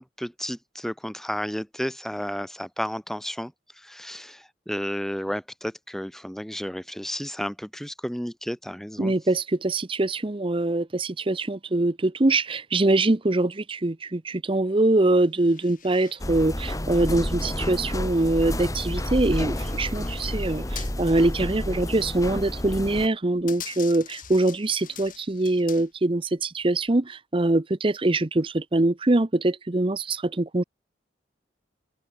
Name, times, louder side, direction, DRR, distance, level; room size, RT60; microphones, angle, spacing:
voice 1, 0.0-9.1, equal, ahead, 1.4 m, -32 dB
voice 2, 9.0-30.6, right 2 dB, 30° right, 0.8 m, -23 dB
sound 1, 15.3-16.2 16.8-21.0 21.3-21.4 22.2-22.6 23.1-26.2 26.7-27.0, left 10 dB, 50° left, 3.5 m, -45 dB
sound 2, 16.2-23.1, left 1 dB, 20° left, 2.1 m, -30 dB
open air
head